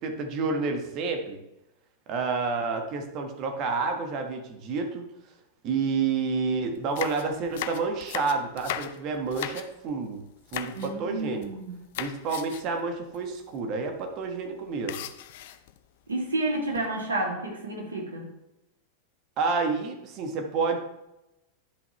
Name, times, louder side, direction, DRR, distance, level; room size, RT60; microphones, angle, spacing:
voice 1, 0.0-1.4 2.1-5.1 5.6-10.2 10.5-11.5 12.0-15.0 19.4-20.8, right 4 dB, 40° right, 4 dB, 1.4 m, -29 dB
sound 1, 6.7-10.0 10.5-10.9 11.2-11.6 11.9-12.8 13.1-13.2 13.5-13.7 14.9-15.8 16.5-17.0, left 11 dB, 55° left, 0.5 m, -37 dB
voice 2, 10.7-11.8 16.1-18.3, right 2 dB, 75° right, -1 dB, 2.3 m, -30 dB
10.5 x 5.5 x 3.1 m, 0.90 s
figure-of-eight pair, 90°, 0 cm